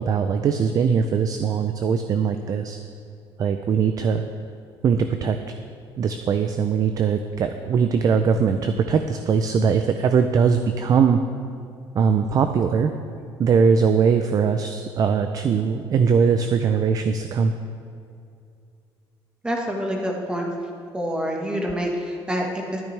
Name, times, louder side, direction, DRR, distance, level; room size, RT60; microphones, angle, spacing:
voice 1, 0.0-2.8 3.4-4.2 4.8-5.4 6.0-11.2 11.9-12.9 13.4-17.5, right 6 dB, 40° right, 8 dB, 0.4 m, -21 dB
voice 2, 19.4-20.5 20.9-22.8, equal, 10° right, 0 dB, 1.4 m, -27 dB
12.0 x 10.5 x 3.3 m, 2.4 s
cardioid pair, 130°, 9 cm